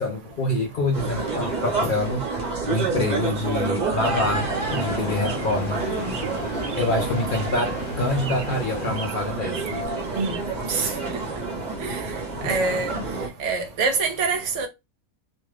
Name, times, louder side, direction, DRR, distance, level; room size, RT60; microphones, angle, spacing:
voice 1, 0.0-5.9 6.4-6.5 6.8-9.8 12.4-12.8, left 2 dB, 85° left, 0.4 m, -26 dB
sound 1, 0.9-13.3, right 3 dB, 35° right, 0.8 m, -29 dB
sound 2, 4.0-9.1, left 2 dB, 65° left, 1.2 m, -35 dB
Chirp tweet, 4.0-5.6 6.1-7.1 7.3-7.9 8.2-8.7 8.9-10.4, right 7 dB, 90° right, 0.5 m, -40 dB
voice 2, 12.4-13.0 13.4-14.7, right 4 dB, 65° right, 1.0 m, -25 dB
2.6 x 2.3 x 3.2 m
omnidirectional pair, 1.5 m